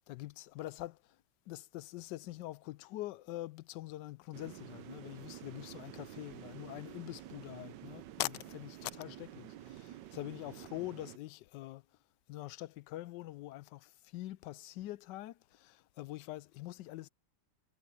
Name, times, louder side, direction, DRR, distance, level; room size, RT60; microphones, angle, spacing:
voice 1, 0.1-1.0 1.5-11.8 12.3-17.1, left 16 dB, 75° left, 1.2 m, -44 dB
sound 1, 4.3-11.2, right 13 dB, 75° right, 1.3 m, -50 dB
omnidirectional pair, 2.0 m